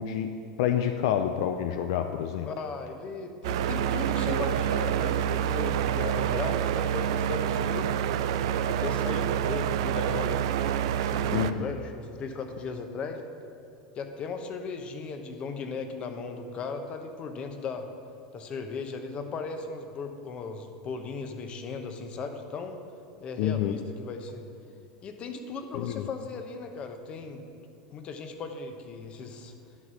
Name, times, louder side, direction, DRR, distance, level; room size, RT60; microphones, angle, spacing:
voice 1, 0.0-2.5 11.3-11.7 23.4-23.8 25.7-26.1, left 10 dB, 70° left, 7 dB, 0.4 m, -28 dB
voice 2, 2.4-8.0 8.7-10.4 11.0-13.2 14.0-17.9 18.3-22.8 23.2-24.4 25.0-27.4 27.9-29.5, left 4 dB, 40° left, 6 dB, 0.9 m, -37 dB
sound 1, 3.4-11.5, right 10 dB, 75° right, 0.4 m, -27 dB
11.0 x 4.0 x 6.2 m, 2.6 s
hypercardioid pair, 100°, 3 cm